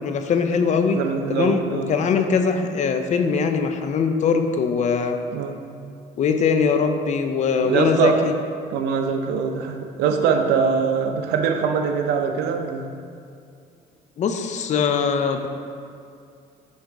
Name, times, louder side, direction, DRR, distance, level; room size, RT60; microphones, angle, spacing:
voice 1, 0.0-1.0 1.3-5.2 6.2-8.3 14.2-15.5, left 5 dB, 45° left, 7 dB, 0.5 m, -21 dB
voice 2, 0.9-1.9 5.3-5.6 7.6-8.2 8.7-12.9, right 6 dB, 85° right, 4 dB, 0.6 m, -23 dB
6.4 x 3.6 x 4.7 m, 2.4 s
cardioid pair, 110°, 17 cm